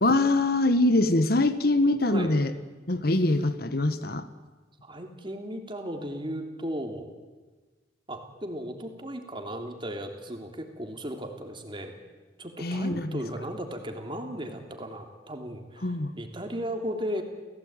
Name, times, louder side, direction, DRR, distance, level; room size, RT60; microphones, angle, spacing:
voice 1, 0.0-2.5 2.9-4.3 12.6-13.2 15.8-16.1, left 2 dB, 60° left, 11 dB, 1.4 m, -23 dB
voice 2, 4.8-7.1 8.1-11.9 12.4-17.2, equal, 30° right, 4 dB, 3.1 m, -36 dB
30.0 x 16.5 x 9.0 m, 1.3 s
head